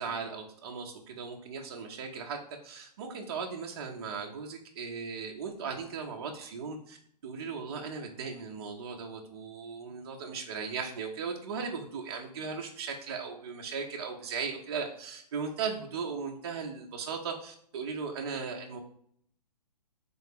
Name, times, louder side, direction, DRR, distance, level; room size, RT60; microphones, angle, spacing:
voice 1, 0.0-2.4 2.6-7.0 7.2-18.8, right 5 dB, 40° right, 1 dB, 0.5 m, -37 dB
3.7 x 2.8 x 3.6 m, 0.66 s
hypercardioid pair, 165°, 21 cm